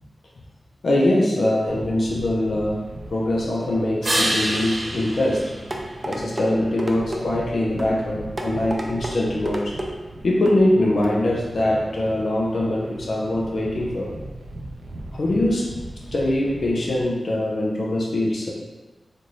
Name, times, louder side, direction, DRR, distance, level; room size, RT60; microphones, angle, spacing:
voice 1, 0.8-2.9 3.1-5.5 6.0-9.8 10.2-14.1 15.1-15.7 16.1-18.5, left 1 dB, 65° left, -3 dB, 0.6 m, -22 dB
sound 1, 1.7-17.0, right 1 dB, 85° right, 0.6 m, -40 dB
sound 2, 4.0-6.6 12.3-16.3, right 1 dB, 45° right, 1.0 m, -31 dB
sound 3, 5.7-6.5 6.8-7.2 7.8-8.0 8.4-9.1 9.5-9.9 10.5-10.6 11.0-11.1, right 1 dB, 20° right, 0.4 m, -29 dB
4.2 x 3.1 x 2.6 m, 1.2 s
wide cardioid pair, 130°, 0 cm